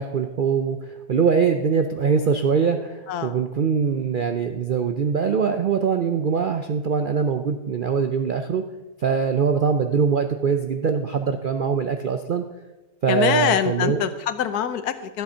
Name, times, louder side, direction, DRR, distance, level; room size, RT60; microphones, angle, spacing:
voice 1, 0.0-8.6 9.0-12.4 13.0-14.0, right 6 dB, 65° right, 6 dB, 0.5 m, -22 dB
voice 2, 13.1-15.2, left 9 dB, 80° left, 12 dB, 1.3 m, -24 dB
13.0 x 8.0 x 5.5 m, 1.1 s
omnidirectional pair, 1.6 m